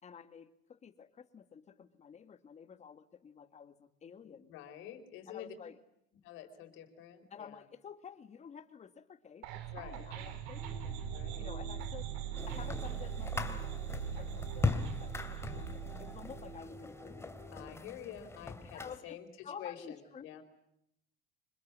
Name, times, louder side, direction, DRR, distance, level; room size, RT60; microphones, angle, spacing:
voice 1, 0.0-4.5 5.3-5.8 7.3-11.0 11.4-12.0 12.3-17.4 18.7-19.2 19.4-20.4, left 7 dB, 35° left, 10 dB, 2.1 m, -51 dB
voice 2, 4.2-5.5 6.2-7.6 9.7-10.1 11.1-11.5 17.5-20.4, left 10 dB, 70° left, 8 dB, 4.5 m, -48 dB
sound 1, 9.4-16.6, right 10 dB, 85° right, 3.4 m, -41 dB
sound 2, 10.6-17.7, left 1 dB, 15° right, 4.2 m, -51 dB
sound 3, 12.3-19.0, left 3 dB, 10° left, 2.7 m, -40 dB
25.5 x 21.5 x 9.6 m, 0.77 s
cardioid pair, 110°, 21 cm